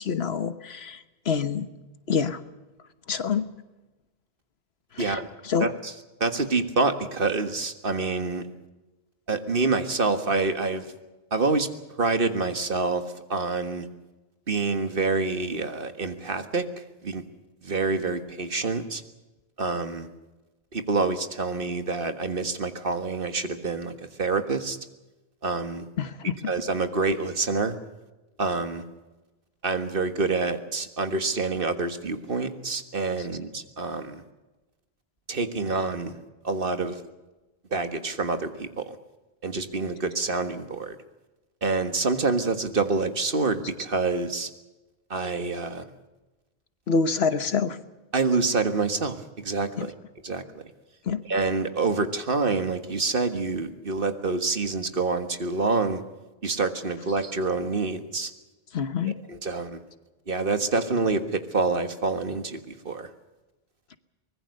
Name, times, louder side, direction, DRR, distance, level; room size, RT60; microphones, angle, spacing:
voice 1, 0.0-1.7 2.1-2.4 3.1-3.5 4.9-5.2 5.4-5.7 26.0-26.5 46.9-47.8 49.8-49.9 51.1-51.2 58.7-59.1, left 5 dB, 80° left, 12 dB, 1.4 m, -26 dB
voice 2, 5.0-5.3 5.6-5.9 6.2-8.4 9.3-10.9 11.3-11.7 12.0-13.0 13.3-13.9 14.5-17.2 17.6-19.0 19.6-20.1 20.7-24.8 25.4-25.9 26.5-27.8 28.4-28.8 29.6-34.2 35.3-36.2 36.4-37.0 37.7-39.0 39.4-41.0 41.6-44.5 45.1-45.8 48.1-49.9 50.2-50.6 51.3-56.0 56.4-58.3 59.0-59.8 60.3-63.1, right 3 dB, 60° right, 9 dB, 1.8 m, -27 dB
24.0 x 20.5 x 6.7 m, 1.1 s
omnidirectional pair, 1.0 m